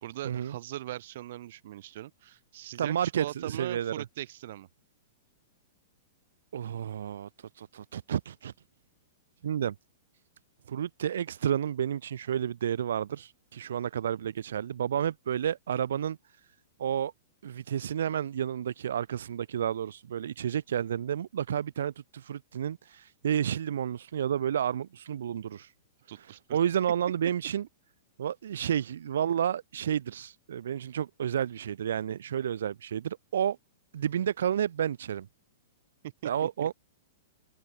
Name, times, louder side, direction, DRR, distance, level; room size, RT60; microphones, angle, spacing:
voice 1, 0.0-4.7 26.1-26.6 36.0-36.5, right 14 dB, 50° right, 2.3 m, -40 dB
voice 2, 2.8-4.0 6.5-7.3 7.6-8.5 9.4-9.8 10.7-16.2 16.8-17.1 17.4-25.7 26.5-27.7 28.2-33.6 33.9-35.3 36.2-36.7, right 9 dB, 80° right, 1.8 m, -31 dB
hypercardioid pair, 170°, 0 cm